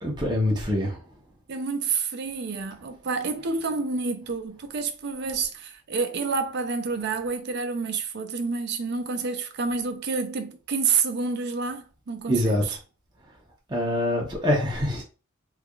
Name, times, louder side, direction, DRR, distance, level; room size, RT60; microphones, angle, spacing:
voice 1, 0.0-1.0 12.3-12.6 13.7-15.0, left 1 dB, 20° right, 0.9 m, -24 dB
voice 2, 1.5-12.8, right 4 dB, 55° right, 0.5 m, -28 dB
3.4 x 3.3 x 2.4 m
head